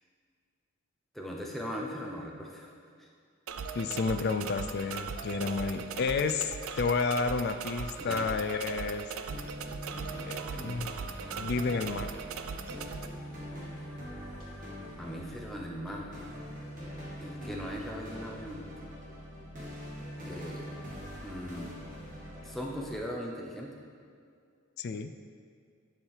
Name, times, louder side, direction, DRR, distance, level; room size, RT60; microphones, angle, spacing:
voice 1, 1.1-2.7 3.0-3.1 5.4-5.5 8.0-8.2 15.0-16.3 17.2-18.7 20.2-20.7 21.2-21.7 22.4-23.8, equal, ahead, -2 dB, 0.6 m, -39 dB
sound 1, 3.5-13.1, right 6 dB, 80° right, 0.4 m, -39 dB
voice 2, 3.7-9.1 10.2-11.0 11.4-12.1 24.8-25.1, left 4 dB, 50° left, 10 dB, 0.3 m, -31 dB
sound 2, 4.6-4.8 5.3-5.6 5.9-6.1 6.5-7.1 7.4-7.6 8.1-8.4 8.7-9.0 9.6-9.8 10.4-10.6 11.2-11.4 11.6-12.1 12.6-12.8 13.2-13.8 14.3-14.6 15.0-15.2 15.5-16.0, left 1 dB, 75° left, 1.6 m, -58 dB
sound 3, 9.3-23.0, equal, 40° right, 1.4 m, -43 dB
10.5 x 4.5 x 3.3 m, 2.2 s
head